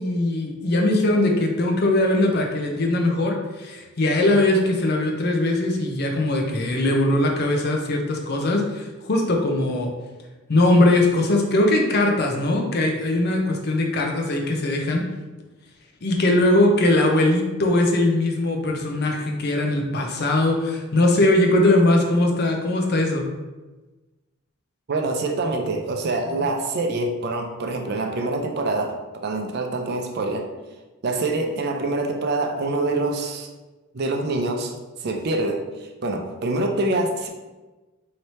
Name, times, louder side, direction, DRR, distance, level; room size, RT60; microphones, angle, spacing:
voice 1, 0.0-9.9 10.5-15.0 16.0-23.2, left 1 dB, 50° left, 2 dB, 0.6 m, -20 dB
voice 2, 24.9-30.5 31.0-33.5 33.9-34.7 35.0-35.6 36.0-37.3, right 2 dB, 50° right, 3 dB, 0.5 m, -25 dB
3.2 x 2.8 x 4.2 m, 1.2 s
head